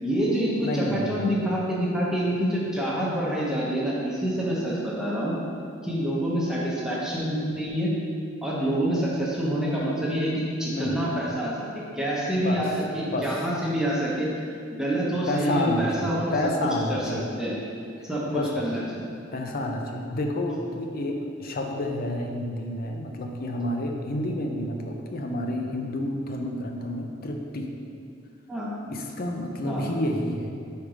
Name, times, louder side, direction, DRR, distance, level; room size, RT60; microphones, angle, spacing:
voice 1, 0.0-5.3 5.8-7.9 8.4-11.7 11.9-12.7 12.9-16.2 16.9-17.0 17.4-17.5 18.1-19.0 28.5-28.7 29.6-29.8, right 1 dB, 5° right, -6 dB, 0.8 m, -27 dB
voice 2, 0.6-1.3 10.7-11.0 12.3-12.7 13.0-13.4 15.3-17.3 18.0-18.7 19.3-27.7 28.8-30.5, left 1 dB, 50° left, 2 dB, 0.6 m, -29 dB
5.0 x 4.6 x 4.9 m, 2.4 s
head